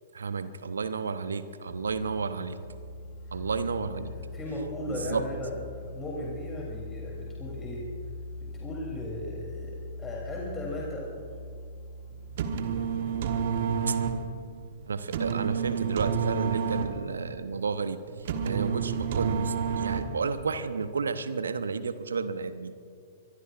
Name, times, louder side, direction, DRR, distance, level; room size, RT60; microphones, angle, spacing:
voice 1, 0.1-2.6 3.3-4.1 4.9-5.3 13.9-14.0 14.9-22.7, right 5 dB, 70° right, 12 dB, 0.9 m, -32 dB
Musical instrument, 1.7-13.7, left 2 dB, 55° left, 1.6 m, -42 dB
voice 2, 4.1-7.9 8.4-11.3, left 1 dB, 15° left, -4 dB, 3.3 m, -37 dB
sound 1, 12.1-20.4, right 6 dB, 55° right, 1.3 m, -30 dB
24.0 x 23.0 x 2.5 m, 2.2 s
figure-of-eight pair, 105°, 0 cm